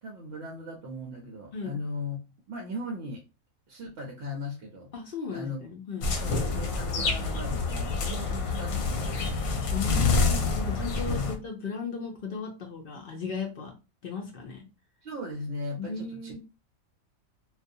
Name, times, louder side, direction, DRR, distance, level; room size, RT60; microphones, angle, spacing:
voice 1, 0.0-2.2 2.5-3.2 3.7-4.9 5.3-5.6 6.2-9.7 11.1-11.3 15.0-16.4, left 2 dB, 60° right, 0 dB, 0.6 m, -38 dB
voice 2, 4.9-6.1 9.7-13.7 14.0-14.7 15.8-16.4, left 5 dB, 60° left, 1 dB, 0.6 m, -36 dB
sound 1, 6.0-11.3, left 4 dB, 80° left, 1.0 m, -27 dB
2.4 x 2.3 x 2.6 m, 0.29 s
omnidirectional pair, 1.4 m